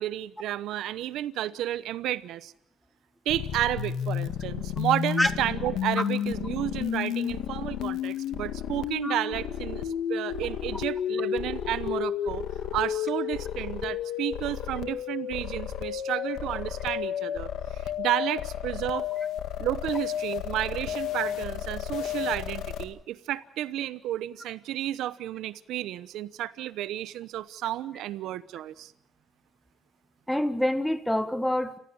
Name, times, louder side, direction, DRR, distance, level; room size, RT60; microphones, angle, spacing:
voice 1, 0.0-2.5 3.2-12.4 12.7-19.1 19.6-28.9, right 13 dB, 85° right, 15 dB, 1.0 m, -32 dB
sound 1, 3.3-22.8, left 9 dB, 85° left, 1.8 m, -32 dB
voice 2, 30.3-31.8, left 1 dB, 5° left, 10 dB, 1.8 m, -26 dB
30.0 x 15.5 x 7.1 m, 0.66 s
cardioid pair, 90°, 0 cm